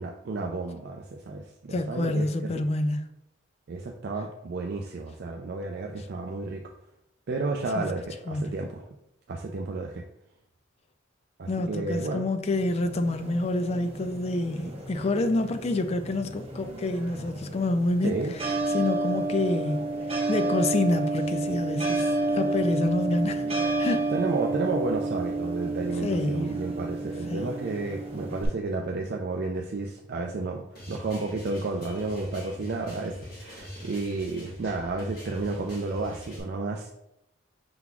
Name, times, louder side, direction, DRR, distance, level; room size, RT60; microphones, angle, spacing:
voice 1, 0.0-2.6 3.7-6.7 7.3-8.8 9.3-10.0 11.4-12.3 14.6-14.7 18.0-18.3 24.1-37.0, right 3 dB, 55° right, 0.4 m, -32 dB
voice 2, 1.7-3.1 7.8-7.9 8.3-8.5 11.5-18.1 18.7-19.9 20.3-23.4 23.8-24.1 26.0-26.5 27.3-27.5, left 2 dB, 30° left, 0.3 m, -27 dB
sound 1, 12.5-28.5, right 2 dB, 30° right, 0.8 m, -30 dB
sound 2, 30.8-36.4, equal, 50° left, 1.7 m, -43 dB
5.8 x 3.8 x 2.3 m
head